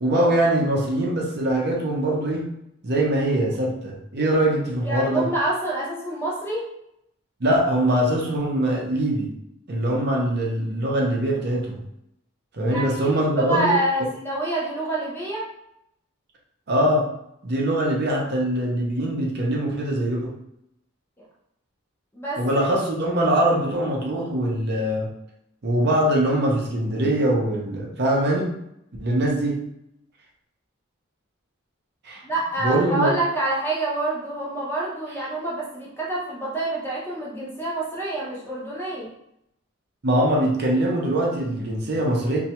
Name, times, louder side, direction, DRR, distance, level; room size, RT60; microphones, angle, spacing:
voice 1, 0.0-2.5 2.8-5.2 7.4-9.3 9.7-11.8 12.5-13.8 16.7-17.1 17.4-20.3 22.4-25.1 25.6-28.5 29.0-29.6 32.0-32.2 32.6-33.1 40.0-42.4, right 1 dB, 50° right, -2 dB, 0.6 m, -22 dB
voice 2, 4.8-6.7 12.6-15.5 22.1-22.4 32.2-39.1, right 2 dB, 10° left, -6 dB, 0.6 m, -27 dB
3.2 x 2.3 x 2.9 m, 0.78 s
head